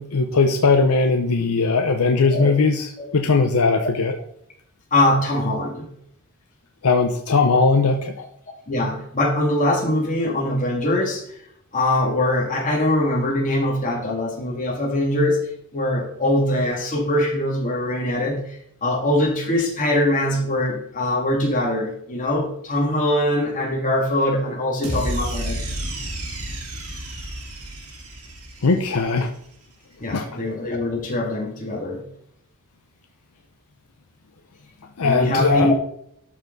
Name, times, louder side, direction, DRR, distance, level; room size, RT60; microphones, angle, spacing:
voice 1, 0.0-4.2 6.8-8.1 28.6-29.3 30.1-30.2 35.0-35.7, left 4 dB, 75° left, 5 dB, 0.7 m, -19 dB
voice 2, 2.1-2.5 3.0-3.1 4.9-5.9 8.7-11.2 11.7-15.4 15.7-25.6 30.0-32.1 35.0-35.7, left 1 dB, 35° left, -1 dB, 2.4 m, -22 dB
sound 1, 24.8-29.2, right 1 dB, 80° right, 2.1 m, -31 dB
12.0 x 4.3 x 4.0 m, 0.71 s
head